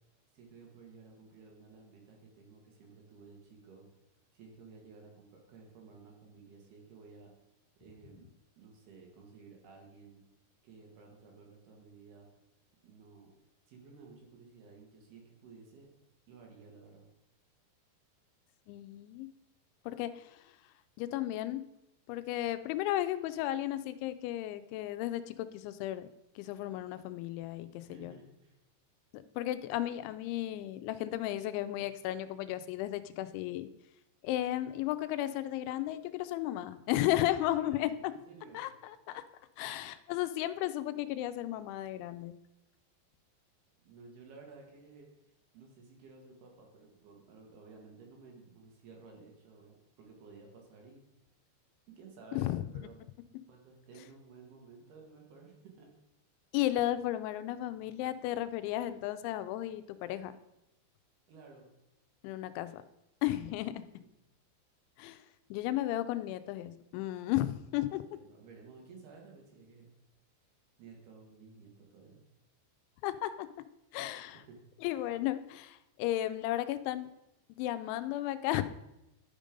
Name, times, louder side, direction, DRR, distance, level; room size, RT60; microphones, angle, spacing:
voice 1, 0.3-3.9 4.3-7.3 7.8-8.3 8.6-10.2 10.6-12.3 12.8-13.3 13.7-15.9 16.3-17.1 27.9-28.6 37.5-38.6 43.8-45.1 45.5-51.0 51.9-53.0 53.5-55.9 61.3-61.7 63.9-64.1 67.7-69.9 70.8-72.2 74.3-74.6, right 4 dB, 65° right, 0 dB, 3.4 m, -54 dB
voice 2, 18.7-19.3 19.9-20.4 21.0-21.6 22.1-26.1 26.4-28.1 29.1-33.7 34.2-38.1 38.5-38.7 39.1-39.2 39.6-42.4 52.3-52.6 56.5-60.4 62.2-62.8 63.2-63.8 65.0-65.2 65.5-68.0 73.0-73.5 73.9-74.4 74.8-77.1 77.5-78.6, left 14 dB, 90° left, 12 dB, 3.0 m, -34 dB
11.5 x 5.2 x 5.1 m, 0.88 s
omnidirectional pair, 5.2 m